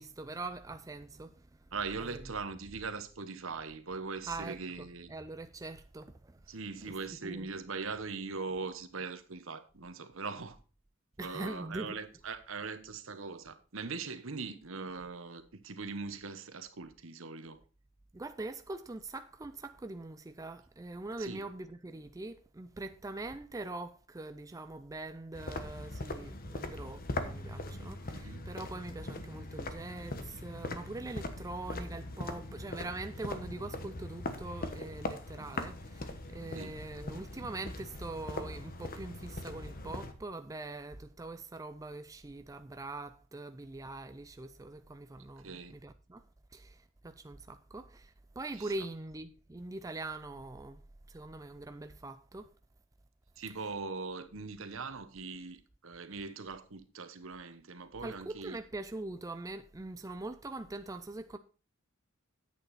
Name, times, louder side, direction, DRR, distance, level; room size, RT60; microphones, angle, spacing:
voice 1, 0.0-1.5 2.0-2.2 4.2-6.4 7.2-7.5 11.2-12.0 18.1-46.2 46.5-50.8 51.1-52.5 58.0-61.4, right 2 dB, 15° right, 0.5 m, -43 dB
voice 2, 1.7-5.1 6.5-10.6 11.2-17.6 21.2-21.4 28.1-28.4 36.5-36.8 45.4-45.7 48.6-48.7 53.4-58.6, right 4 dB, 70° right, 1.1 m, -41 dB
sound 1, 25.3-40.1, left 2 dB, 45° left, 1.2 m, -41 dB
9.8 x 8.3 x 4.1 m
head